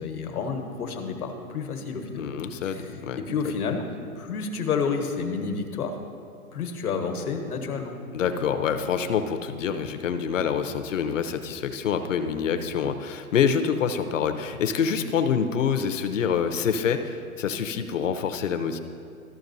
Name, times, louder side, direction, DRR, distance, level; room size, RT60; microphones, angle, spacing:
voice 1, 0.0-2.3 2.6-3.8 4.2-6.0 6.5-8.0, left 5 dB, 80° left, 4 dB, 1.3 m, -30 dB
voice 2, 2.2-3.5 8.1-18.8, left 7 dB, 55° left, 8 dB, 0.7 m, -26 dB
13.5 x 6.8 x 2.7 m, 2.4 s
hypercardioid pair, 160°, 44 cm